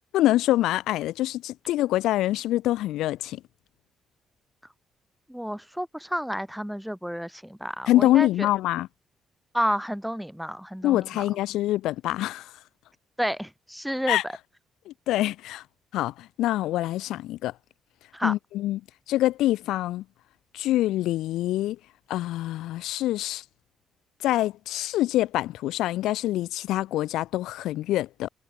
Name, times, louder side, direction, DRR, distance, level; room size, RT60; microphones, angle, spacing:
voice 1, 0.1-3.4 7.9-8.9 10.8-12.5 14.1-14.2 14.9-15.6 15.9-17.5 18.2-18.8 19.1-20.0 20.5-21.8 22.1-23.4 24.2-28.3, left 15 dB, 90° left, 4.5 m, -25 dB
voice 2, 5.3-8.5 9.5-11.2 13.2-14.3 18.1-18.3, equal, ahead, 4.5 m, -30 dB
cardioid pair, 90°, 0 cm